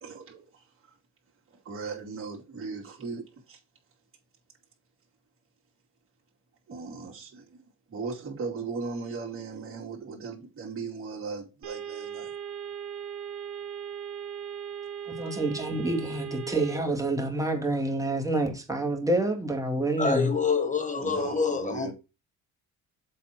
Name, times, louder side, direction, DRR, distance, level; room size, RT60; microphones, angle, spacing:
voice 1, 0.0-0.9 1.5-3.6 6.7-12.3 21.0-21.9, right 4 dB, 45° right, 2.7 m, -38 dB
sound 1, 11.6-16.8, right 8 dB, 75° right, 1.8 m, -38 dB
voice 2, 15.1-20.3, right 2 dB, 10° right, 2.3 m, -28 dB
voice 3, 20.0-21.9, left 5 dB, 25° left, 1.5 m, -26 dB
7.5 x 4.2 x 5.8 m
cardioid pair, 90°, 30 cm